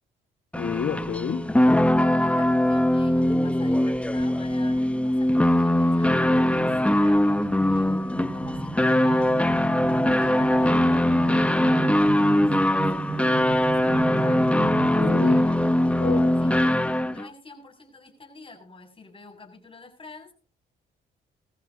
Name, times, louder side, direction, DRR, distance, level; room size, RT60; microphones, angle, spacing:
voice 1, 0.5-1.5 14.8-15.4 16.0-16.3, left 7 dB, 60° left, 5 dB, 1.6 m, -29 dB
sound 1, 0.5-17.3, left 1 dB, 5° left, 1.0 m, -21 dB
voice 2, 2.1-7.3 7.7-11.1 11.5-14.5 14.9-15.7 16.4-16.8 17.1-20.3, left 3 dB, 25° left, 2 dB, 6.8 m, -47 dB
sound 2, 6.0-15.5, right 5 dB, 25° right, 1.5 m, -34 dB
22.0 x 14.5 x 2.8 m, 0.37 s
cardioid pair, 90°, 20 cm